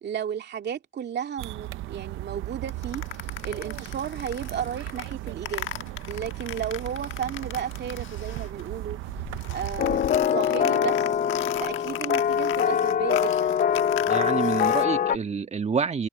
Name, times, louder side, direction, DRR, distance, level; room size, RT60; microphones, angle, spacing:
voice 1, 0.0-3.0 3.4-5.7 6.1-9.0 9.5-11.2 11.6-13.6, right 8 dB, 60° right, 2.6 m, -33 dB
sound 1, 1.4-10.0, right 16 dB, 90° right, 0.6 m, -36 dB
sound 2, 2.7-8.7 9.0-14.9, left 12 dB, 80° left, 1.3 m, -38 dB
sound 3, 9.8-15.2, left 8 dB, 45° left, 0.6 m, -23 dB
voice 2, 14.1-16.1, right 5 dB, 35° right, 1.5 m, -27 dB
cardioid pair, 90°, 20 cm